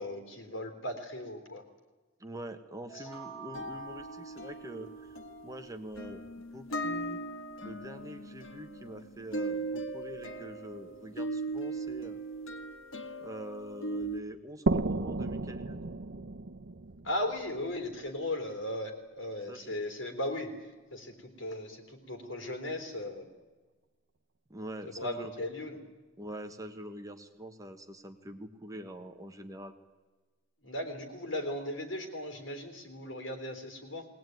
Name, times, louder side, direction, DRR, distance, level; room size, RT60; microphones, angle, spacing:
voice 1, 0.0-1.6 2.9-3.0 17.0-23.3 24.9-25.8 30.6-34.1, left 1 dB, 70° left, 6 dB, 3.6 m, -37 dB
voice 2, 2.2-6.2 6.5-7.2 7.6-12.2 13.2-15.8 19.5-19.8 24.5-25.3 26.2-29.7, right 1 dB, 15° right, 6 dB, 1.4 m, -44 dB
sound 1, 2.9-5.6, right 7 dB, ahead, 4.8 m, -49 dB
sound 2, 3.5-14.2, right 2 dB, 85° left, 1.9 m, -39 dB
sound 3, 14.7-18.2, right 2 dB, 65° right, 0.8 m, -33 dB
20.5 x 19.0 x 9.4 m, 1.3 s
head